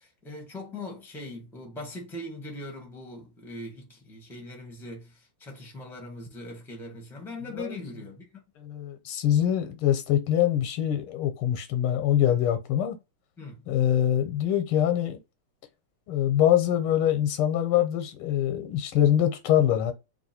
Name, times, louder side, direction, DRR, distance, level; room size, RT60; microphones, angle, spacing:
voice 1, 0.0-8.4 13.4-13.6, left 1 dB, ahead, 1.0 m, -40 dB
voice 2, 8.6-13.0 13.7-15.2 16.1-19.9, left 11 dB, 85° left, 1.8 m, -24 dB
3.3 x 3.0 x 4.3 m
omnidirectional pair, 2.3 m